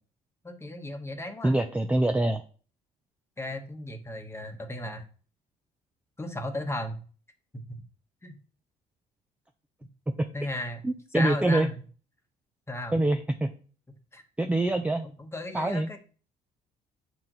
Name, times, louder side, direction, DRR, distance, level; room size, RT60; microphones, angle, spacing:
voice 1, 0.4-1.6 3.4-5.1 6.2-7.0 7.7-7.8 8.2-8.4 10.3-11.8 12.7-13.0 14.1-14.2 15.0-16.0, left 1 dB, 15° left, 6 dB, 1.1 m, -35 dB
voice 2, 1.4-2.4 10.2-10.3 10.8-11.7 12.9-13.5 14.4-15.1 15.5-15.9, right 2 dB, 10° right, 5 dB, 0.4 m, -25 dB
7.2 x 4.5 x 3.9 m, 0.40 s
cardioid pair, 110°, 17 cm